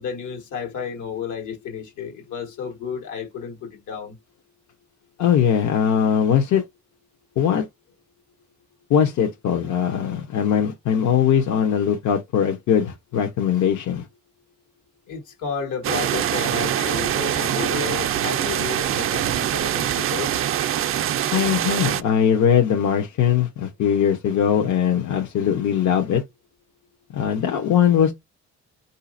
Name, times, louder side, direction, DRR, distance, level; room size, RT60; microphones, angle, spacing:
voice 1, 0.0-4.2 15.1-20.3, left 6 dB, 85° left, 1.6 m, -32 dB
voice 2, 5.2-6.6 7.4-7.6 8.9-14.0 21.3-26.2 27.1-28.1, left 8 dB, 70° left, 0.9 m, -20 dB
sound 1, 15.8-22.0, right 11 dB, 45° right, 0.4 m, -24 dB
4.0 x 2.7 x 2.5 m
cardioid pair, 90°, 30 cm